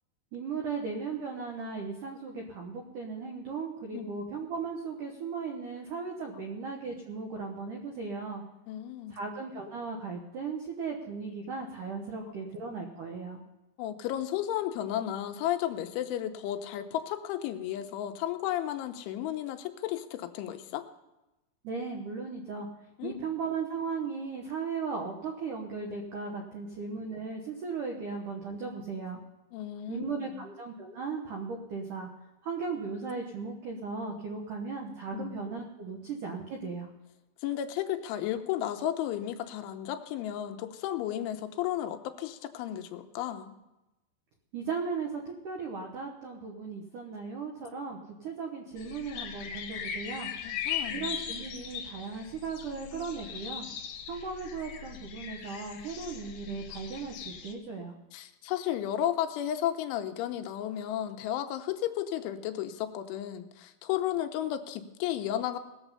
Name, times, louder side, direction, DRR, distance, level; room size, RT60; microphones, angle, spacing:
voice 1, 0.3-8.4 9.1-13.4 21.6-22.7 23.0-29.2 29.9-32.1 32.4-36.9 44.5-50.3 50.9-53.7 54.1-58.0, right 5 dB, 85° right, 1 dB, 1.8 m, -37 dB
voice 2, 8.7-9.2 13.8-20.8 23.0-23.2 29.5-30.4 35.1-35.3 37.4-43.5 50.4-51.1 58.1-65.6, left 11 dB, 85° left, 7 dB, 3.1 m, -33 dB
sound 1, 48.8-57.5, left 8 dB, 70° left, 2.5 m, -39 dB
19.5 x 7.2 x 5.5 m, 0.98 s
omnidirectional pair, 5.5 m